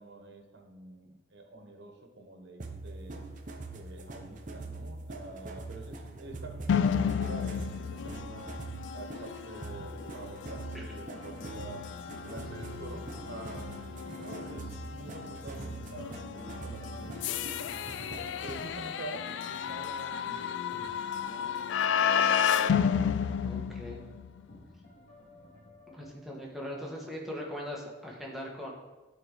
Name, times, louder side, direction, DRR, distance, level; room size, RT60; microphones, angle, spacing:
voice 1, 0.0-3.2 3.7-8.6 8.9-11.9 12.2-17.5 18.4-20.9, right 2 dB, 65° right, 3 dB, 1.2 m, -46 dB
sound 1, 2.6-18.8, right 2 dB, 45° right, 0.8 m, -43 dB
sound 2, 6.7-24.4, left 7 dB, 80° left, 0.3 m, -32 dB
Sound from Andromeda, 11.1-26.1, left 3 dB, 50° left, 2.0 m, -51 dB
voice 2, 23.4-24.0 25.9-28.7, equal, ahead, -3 dB, 1.5 m, -40 dB
11.0 x 4.6 x 3.9 m, 1.2 s
head